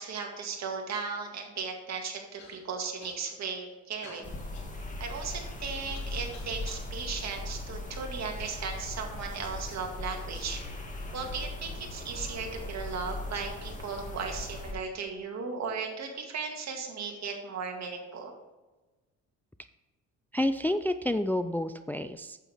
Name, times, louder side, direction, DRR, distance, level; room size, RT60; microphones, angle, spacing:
voice 1, 0.0-4.3 5.0-10.6 11.1-18.3, right 5 dB, 60° right, 2 dB, 2.2 m, -36 dB
Human voice / Cough, 2.4-2.6 3.0-3.5 4.0-6.9 7.6-8.4 9.2-9.3 10.0-10.3, left 4 dB, 65° left, 2.7 m, -52 dB
sound 1, 4.2-14.7, left 2 dB, 25° left, 2.1 m, -39 dB
voice 2, 20.3-22.4, left 1 dB, 5° left, 10 dB, 0.4 m, -29 dB
8.9 x 8.3 x 3.5 m, 1.2 s
cardioid pair, 90°, 30 cm